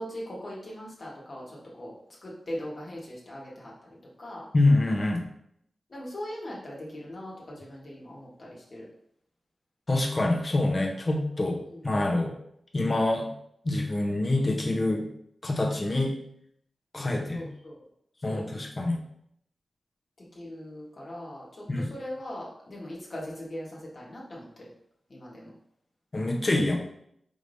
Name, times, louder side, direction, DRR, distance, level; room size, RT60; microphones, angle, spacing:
voice 1, 0.0-1.9 2.2-4.5 5.9-8.9 11.4-11.8 17.1-17.9 18.2-18.5 20.3-24.5 25.1-25.5, equal, 55° left, -4 dB, 1.5 m, -40 dB
voice 2, 4.5-5.2 9.9-11.6 11.8-12.3 12.7-13.3 13.6-15.1 15.4-16.2 16.9-17.5 18.2-19.0 21.7-21.9 26.1-26.8, left 2 dB, 40° left, 0 dB, 0.9 m, -25 dB
4.9 x 3.4 x 2.7 m, 0.72 s
wide cardioid pair, 70°, 0 cm